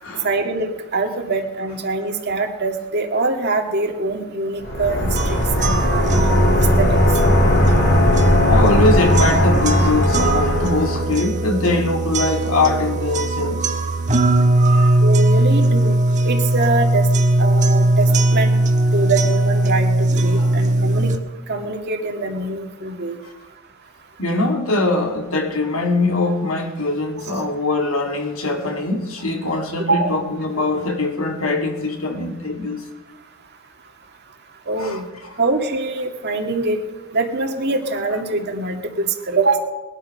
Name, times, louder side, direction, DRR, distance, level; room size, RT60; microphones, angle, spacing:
voice 1, 0.2-6.1 6.5-7.0 15.0-16.0 16.2-17.1 17.4-18.6 18.9-21.1 21.5-23.2 29.9-30.2 34.7-35.0 35.4-36.8 37.1-39.6, right 3 dB, 55° right, 2.1 m, -23 dB
sound 1, 4.6-11.1, left 1 dB, 55° left, 3.0 m, -18 dB
sound 2, 5.2-21.2, right 1 dB, 35° right, 1.3 m, -19 dB
voice 2, 7.5-8.1 8.4-13.7 14.7-15.0 20.3-20.5 24.2-32.8 34.8-35.0, left 2 dB, 80° left, 2.5 m, -22 dB
20.0 x 11.5 x 5.8 m
head